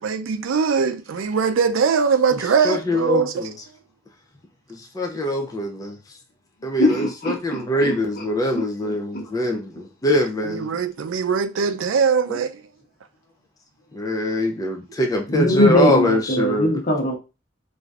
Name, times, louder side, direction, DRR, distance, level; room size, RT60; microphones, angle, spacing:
voice 1, 0.0-3.5 10.4-12.6, right 6 dB, 85° right, 0.4 m, -21 dB
voice 2, 2.6-3.5 5.0-5.9 6.6-6.9 7.3-10.7 12.3-12.4 13.9-16.7, left 1 dB, 20° left, 0.4 m, -23 dB
voice 3, 6.8-8.2 8.5-9.2 9.5-9.6 10.1-10.2 15.3-17.1, left 1 dB, 50° left, 1.0 m, -22 dB
3.2 x 2.5 x 2.4 m
head